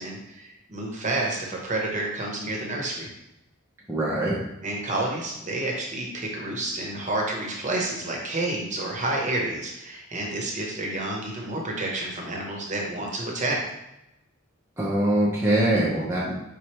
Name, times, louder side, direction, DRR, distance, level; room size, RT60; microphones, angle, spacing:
voice 1, 0.0-3.1 4.6-13.6, right 2 dB, 35° right, -1 dB, 0.9 m, -29 dB
voice 2, 3.9-4.4 14.8-16.3, right 1 dB, 10° right, -6 dB, 0.7 m, -23 dB
5.1 x 3.3 x 2.9 m, 0.87 s
head